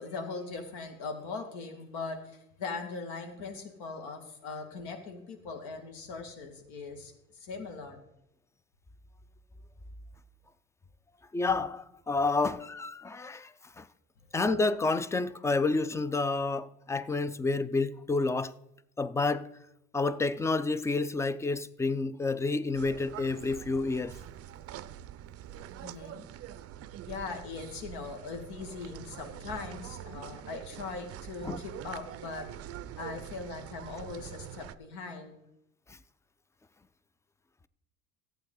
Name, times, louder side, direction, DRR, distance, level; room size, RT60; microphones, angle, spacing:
voice 1, 0.0-8.0 25.8-26.2 27.0-35.3, left 4 dB, 65° left, 2.3 m, -40 dB
voice 2, 11.3-13.9 14.3-18.5 19.0-19.5 19.9-24.2 31.4-31.6 35.9-36.0, left 3 dB, 5° left, 0.4 m, -29 dB
sound 1, 22.7-34.8, right 11 dB, 35° right, 0.6 m, -45 dB
14.0 x 8.8 x 3.8 m
hypercardioid pair, 75°, 42 cm